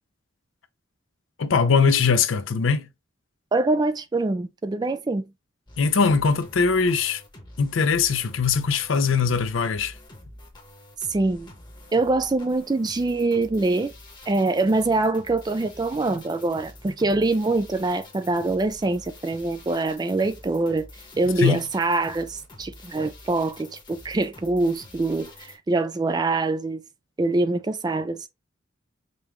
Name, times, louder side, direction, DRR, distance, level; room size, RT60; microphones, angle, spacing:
voice 1, 1.4-2.9 5.8-7.2 7.6-10.0 21.4-21.6, left 5 dB, 75° left, 0.6 m, -21 dB
voice 2, 3.5-5.2 11.1-11.5 11.9-13.9 14.3-20.9 21.2-26.8 27.2-28.3, right 2 dB, 20° right, 0.3 m, -24 dB
sound 1, 5.7-25.6, left 1 dB, 20° left, 1.0 m, -47 dB
5.2 x 2.3 x 3.0 m
head